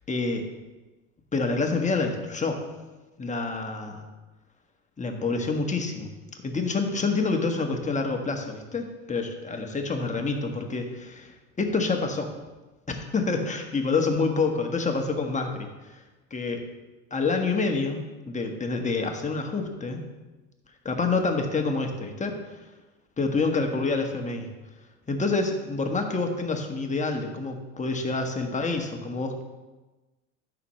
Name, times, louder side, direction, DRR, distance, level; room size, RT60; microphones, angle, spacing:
voice 1, 0.1-0.5 1.3-2.6 3.2-4.0 5.0-6.1 6.4-12.3 12.9-16.0 16.3-16.6 17.1-18.0 18.3-20.0 20.8-22.6 23.2-24.5 25.1-29.4, left 3 dB, 20° left, 3 dB, 1.4 m, -27 dB
12.5 x 6.1 x 3.2 m, 1.1 s
hypercardioid pair, 85°, 35 cm